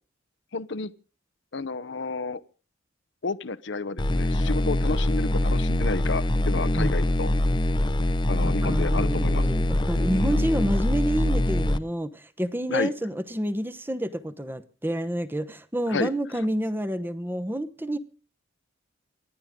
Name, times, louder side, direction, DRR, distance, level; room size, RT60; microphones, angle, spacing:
voice 1, 0.5-0.9 1.5-2.4 3.2-7.3 8.3-9.5 10.1-10.4 12.7-12.9 15.9-16.1, left 3 dB, 60° left, 0.8 m, -31 dB
sound 1, 4.0-11.8, left 1 dB, 25° left, 0.7 m, -24 dB
voice 2, 6.7-7.1 8.4-18.0, right 1 dB, 10° right, 1.0 m, -29 dB
28.0 x 10.5 x 3.7 m
head